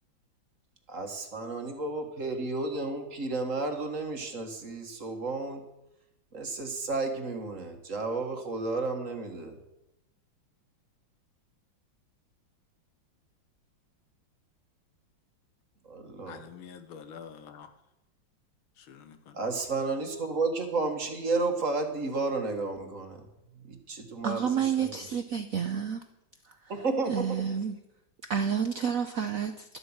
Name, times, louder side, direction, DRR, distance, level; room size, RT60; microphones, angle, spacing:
voice 1, 0.9-5.6 6.3-9.6 15.9-16.4 19.3-23.2 23.7-25.1 26.7-27.4, right 3 dB, 40° right, 1.7 m, -32 dB
voice 2, 16.3-17.7 18.8-19.4, left 7 dB, 90° left, 1.9 m, -47 dB
voice 3, 24.2-26.0 27.1-27.8 28.3-29.8, right 7 dB, 65° right, 0.8 m, -29 dB
12.0 x 8.3 x 7.2 m
omnidirectional pair, 2.2 m